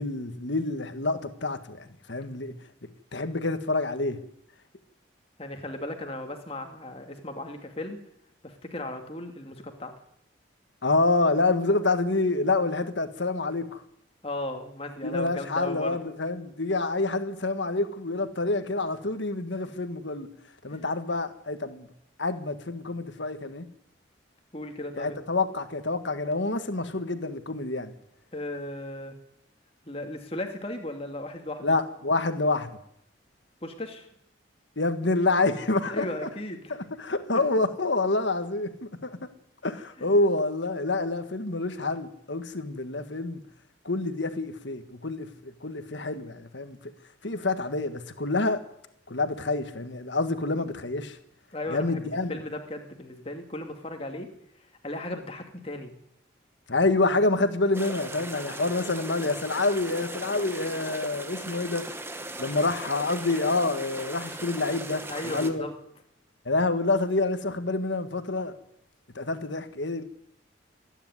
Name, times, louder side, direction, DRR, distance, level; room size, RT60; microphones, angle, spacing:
voice 1, 0.0-2.5 3.1-4.2 10.8-13.8 15.0-20.3 20.6-21.9 22.2-23.7 24.9-27.9 31.6-32.8 34.8-36.0 36.7-39.3 39.6-43.4 43.8-46.8 47.2-48.6 49.1-51.2 51.7-52.4 56.7-61.9 62.4-65.6 66.4-68.5 69.1-70.0, left 2 dB, 70° left, 1.7 m, -27 dB
voice 2, 5.4-8.0 8.4-9.9 14.2-16.0 20.7-20.8 24.5-25.2 28.3-29.1 29.8-31.7 33.6-34.1 35.9-36.7 40.0-40.1 51.5-52.0 52.3-54.3 54.8-55.9 65.1-65.7, left 1 dB, 30° left, 2.4 m, -36 dB
sound 1, 57.7-65.5, right 2 dB, 10° right, 1.3 m, -38 dB
26.5 x 10.0 x 9.7 m
head